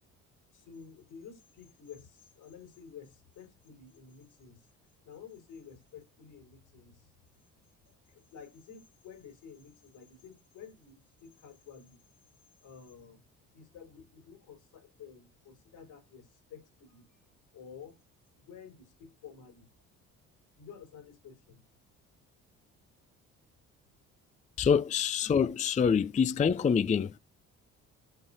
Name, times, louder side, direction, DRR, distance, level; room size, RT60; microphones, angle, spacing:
voice 1, 0.5-4.7 5.0-7.1 7.8-12.0 12.6-13.2 13.5-17.2 17.5-17.9 18.3-19.7 20.6-21.6, left 7 dB, 75° left, 5.0 m, -51 dB
voice 2, 24.6-27.2, left 6 dB, 20° left, 0.4 m, -26 dB
14.5 x 5.5 x 2.7 m
hypercardioid pair, 55°, 37 cm